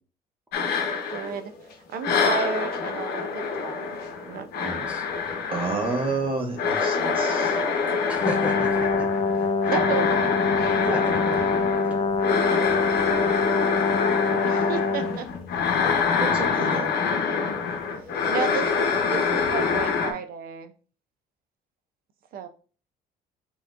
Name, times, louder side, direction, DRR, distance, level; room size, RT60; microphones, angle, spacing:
sound 1, 0.5-1.7 2.0-20.1, left 5 dB, 70° left, 0.9 m, -26 dB
voice 1, 1.1-1.5 1.9-3.8 4.2-4.9 9.6-10.3 11.2-11.3 13.0-13.2 14.4-15.3 18.3-20.7 22.3-22.5, right 7 dB, 60° right, 9 dB, 0.6 m, -32 dB
voice 2, 4.6-5.1 8.1-9.1 9.6-9.7 10.8-11.6 15.8-16.0, equal, 5° right, 2 dB, 0.7 m, -33 dB
voice 3, 5.5-7.6 16.2-16.9, right 3 dB, 30° right, 1 dB, 1.3 m, -29 dB
Brass instrument, 8.2-15.2, left 4 dB, 40° left, 0.5 m, -25 dB
5.7 x 3.0 x 2.5 m, 0.39 s
cardioid pair, 110°, 17 cm